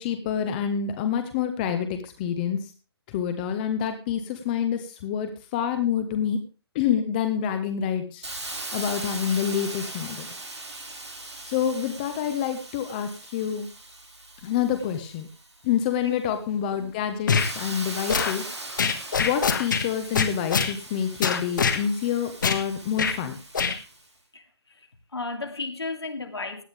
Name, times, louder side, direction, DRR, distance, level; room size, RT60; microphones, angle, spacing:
voice 1, 0.0-2.6 3.1-6.4 6.7-8.2 8.7-10.3 11.4-13.7 14.4-15.3 15.6-18.4 19.2-23.4, left 8 dB, 20° left, 1.2 m, -27 dB
Hiss, 8.2-15.8 16.3-24.0, right 2 dB, 85° right, 3.2 m, -40 dB
sound 1, 17.3-17.5 18.1-18.3 18.8-19.9 20.1-20.7 21.2-21.8 22.4-22.6 23.0-23.2 23.5-23.8, left 6 dB, 45° left, 1.5 m, -23 dB
voice 2, 24.3-26.6, left 3 dB, 70° left, 2.5 m, -34 dB
17.0 x 10.5 x 3.6 m
figure-of-eight pair, 145°, 14 cm